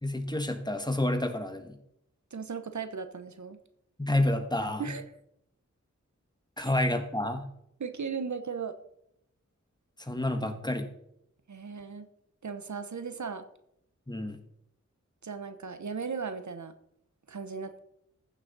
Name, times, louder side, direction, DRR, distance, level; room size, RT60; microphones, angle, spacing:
voice 1, 0.0-1.8 4.0-4.8 6.6-7.5 10.0-10.9 14.1-14.4, left 1 dB, 15° left, 7 dB, 1.3 m, -29 dB
voice 2, 2.3-3.6 4.8-5.0 6.6-6.7 7.8-8.7 11.5-12.1 12.4-13.4 15.2-16.7 17.3-17.8, right 5 dB, 70° right, 9 dB, 1.0 m, -37 dB
15.0 x 6.3 x 4.1 m, 0.75 s
wide cardioid pair, 65°, 30 cm